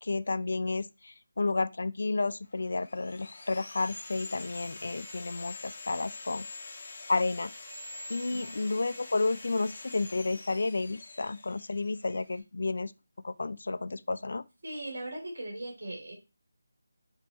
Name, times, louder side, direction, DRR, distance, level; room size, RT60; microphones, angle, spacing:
voice 1, 0.0-6.7 7.1-7.5 8.1-12.9 13.2-14.4, left 3 dB, 60° left, 0.3 m, -31 dB
Sawing, 2.5-12.4, left 2 dB, 35° left, 1.0 m, -45 dB
voice 2, 14.6-16.1, right 1 dB, 55° right, 2.7 m, -39 dB
5.9 x 3.0 x 3.0 m
figure-of-eight pair, 170°, 0 cm